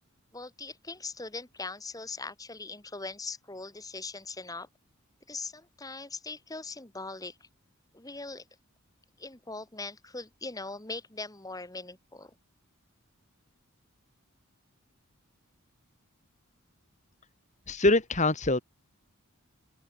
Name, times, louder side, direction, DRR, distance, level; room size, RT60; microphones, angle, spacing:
voice 1, 0.3-4.7 5.3-7.5 7.9-8.4 9.2-12.3, left 3 dB, 15° left, 2.1 m, -40 dB
voice 2, 17.7-18.6, left 2 dB, 35° left, 2.4 m, -24 dB
open air
head